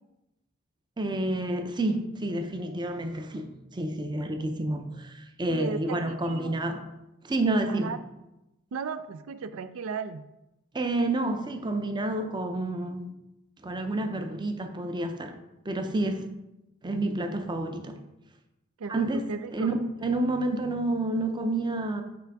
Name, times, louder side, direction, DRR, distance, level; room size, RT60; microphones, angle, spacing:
voice 1, 1.0-3.5 3.7-6.8 7.2-7.9 10.7-13.1 13.6-15.4 15.7-16.3 16.8-18.0 18.9-19.2 19.5-22.0, right 2 dB, 20° right, 6 dB, 0.6 m, -29 dB
voice 2, 5.5-6.6 7.7-8.0 8.7-10.2 18.8-19.7, right 5 dB, 85° right, 11 dB, 0.4 m, -35 dB
8.1 x 3.5 x 4.7 m, 0.92 s
head